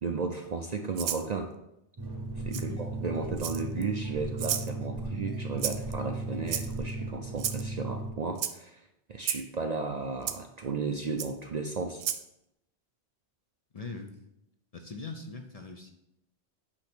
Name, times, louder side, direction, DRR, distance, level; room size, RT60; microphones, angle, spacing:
voice 1, 0.0-1.5 2.4-12.0, right 4 dB, 50° right, 4 dB, 0.5 m, -34 dB
Rattle (instrument), 1.0-1.3 2.5-2.6 3.4-3.8 4.4-4.7 5.6-5.9 6.5-6.9 7.4-7.6 8.4-8.5 9.2-9.4 10.3-10.4 11.2-11.3 12.0-12.2, right 9 dB, 90° right, 0.9 m, -32 dB
sound 1, 2.0-8.1, right 2 dB, 25° right, 0.8 m, -36 dB
voice 2, 13.7-14.2 14.7-15.9, left 3 dB, 40° left, 4 dB, 0.7 m, -41 dB
8.5 x 3.0 x 6.0 m, 0.84 s
omnidirectional pair, 1.1 m